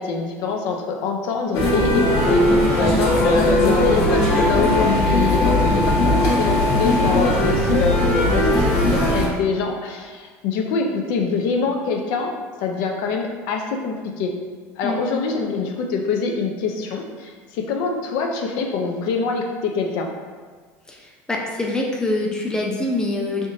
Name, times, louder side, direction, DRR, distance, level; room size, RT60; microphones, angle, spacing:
voice 1, 0.0-2.4 2.8-12.3 12.6-14.3 14.8-20.1, left 4 dB, 70° left, 2 dB, 0.5 m, -25 dB
sound 1, 1.5-9.3, left 1 dB, 50° left, 1.1 m, -18 dB
voice 2, 20.9-23.5, left 2 dB, 10° left, -1 dB, 0.5 m, -25 dB
3.5 x 2.6 x 3.7 m, 1.5 s
supercardioid pair, 125°, 7 cm